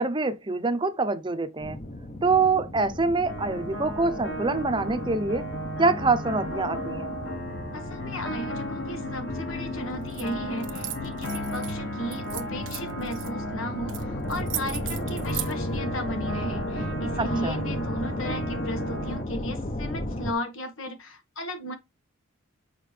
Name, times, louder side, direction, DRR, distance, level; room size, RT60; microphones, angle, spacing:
voice 1, 0.0-1.8 2.2-5.5 5.8-7.1 17.2-17.6, right 3 dB, 25° right, 0.7 m, -25 dB
sound 1, 1.6-20.3, left 1 dB, 35° left, 0.8 m, -35 dB
sound 2, 3.3-19.2, equal, 65° left, 2.1 m, -35 dB
voice 2, 7.7-21.7, equal, 90° left, 1.6 m, -35 dB
sound 3, 10.1-10.3 10.6-11.7 12.1-13.3 13.9-14.0 14.3-15.5, right 15 dB, 65° right, 0.8 m, -36 dB
6.6 x 4.8 x 3.3 m
head